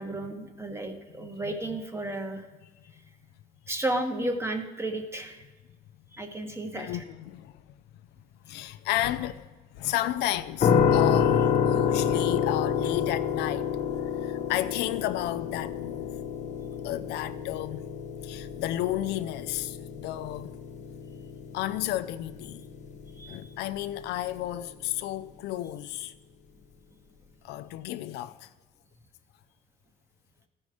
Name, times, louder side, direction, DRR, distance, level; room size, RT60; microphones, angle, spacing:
voice 1, 0.0-2.4 3.7-5.4 6.1-7.0 23.2-23.4, right 1 dB, 15° right, 1.2 m, -33 dB
voice 2, 1.2-1.7 2.6-2.9 6.7-7.6 8.4-13.7 14.0-16.1 16.8-17.8 18.2-20.6 21.5-22.6 23.3-26.1 27.4-28.5, left 14 dB, 85° left, 0.5 m, -33 dB
sound 1, 10.6-23.5, left 7 dB, 45° left, 0.9 m, -28 dB
14.0 x 5.3 x 4.9 m
cardioid pair, 110°, 17 cm